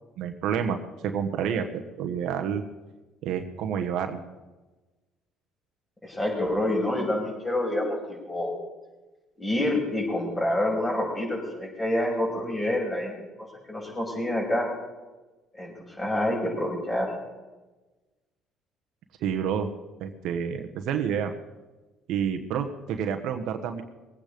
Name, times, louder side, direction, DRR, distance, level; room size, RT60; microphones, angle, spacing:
voice 1, 0.2-2.6 3.2-4.2 19.2-19.7 20.0-21.3 22.1-23.8, right 7 dB, 70° right, 6 dB, 1.2 m, -29 dB
voice 2, 6.0-8.5 9.4-13.1 13.7-14.7 15.5-17.1, left 1 dB, 20° left, 0 dB, 6.2 m, -27 dB
21.0 x 9.0 x 5.1 m, 1.2 s
supercardioid pair, 75°, 0 cm